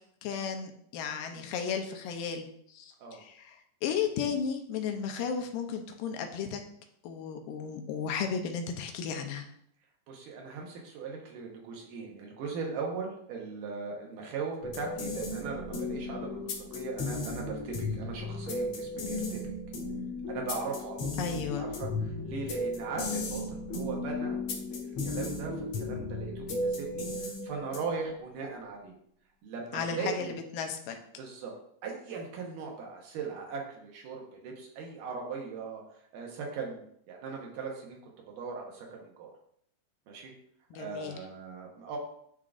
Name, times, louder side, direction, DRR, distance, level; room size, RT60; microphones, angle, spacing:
voice 1, 0.2-6.6 7.0-9.5 21.2-21.7 29.7-31.0 40.7-41.2, left 6 dB, 85° left, 4 dB, 2.4 m, -34 dB
voice 2, 10.1-19.4 20.3-28.9 29.4-30.3 31.2-31.5 31.8-35.8 36.1-39.3 40.1-40.3 40.7-42.0, right 4 dB, 75° right, 0 dB, 2.5 m, -39 dB
sound 1, 14.6-28.1, left 2 dB, 60° left, 1.9 m, -35 dB
11.0 x 3.7 x 2.5 m, 0.68 s
omnidirectional pair, 3.9 m